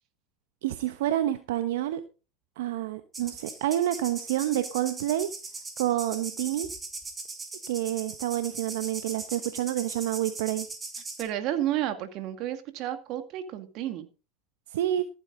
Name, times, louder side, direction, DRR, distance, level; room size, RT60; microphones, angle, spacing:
voice 1, 0.6-2.0 2.6-5.3 5.8-6.7 7.7-10.7 14.7-15.0, right 13 dB, 75° right, 10 dB, 1.0 m, -28 dB
sound 1, 3.1-11.2, right 3 dB, 20° right, 3.4 m, -39 dB
voice 2, 11.2-14.1, right 12 dB, 55° right, 9 dB, 2.1 m, -31 dB
15.0 x 8.9 x 3.9 m, 0.31 s
hypercardioid pair, 100°, 0 cm